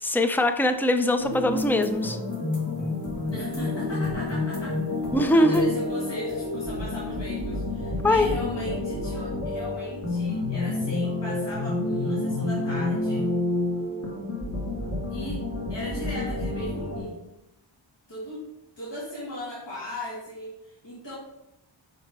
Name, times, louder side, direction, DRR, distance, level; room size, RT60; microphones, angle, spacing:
voice 1, 0.0-2.2 5.1-5.7 8.0-8.3, left 1 dB, 5° left, 8 dB, 0.4 m, -22 dB
sound 1, 1.2-17.0, left 2 dB, 35° left, 1.9 m, -29 dB
voice 2, 3.3-13.3 15.1-15.4 15.7-17.2 18.1-18.5 18.8-21.1, equal, 60° left, -8 dB, 2.0 m, -37 dB
5.3 x 4.9 x 4.2 m, 0.90 s
wide cardioid pair, 65°, 50 cm